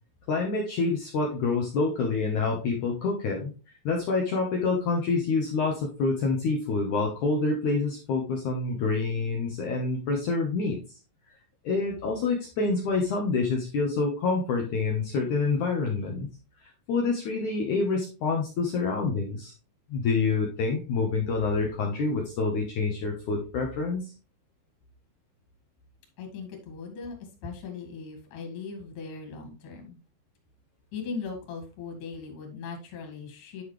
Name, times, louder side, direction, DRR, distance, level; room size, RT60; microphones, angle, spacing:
voice 1, 0.3-3.5 3.9-10.8 11.6-16.3 16.9-19.5 19.9-24.1, left 4 dB, 80° left, 0 dB, 1.7 m, -27 dB
voice 2, 26.2-27.1 27.4-30.0 30.9-33.6, left 5 dB, 50° left, 2 dB, 3.3 m, -39 dB
10.0 x 5.7 x 3.2 m, 0.33 s
omnidirectional pair, 5.3 m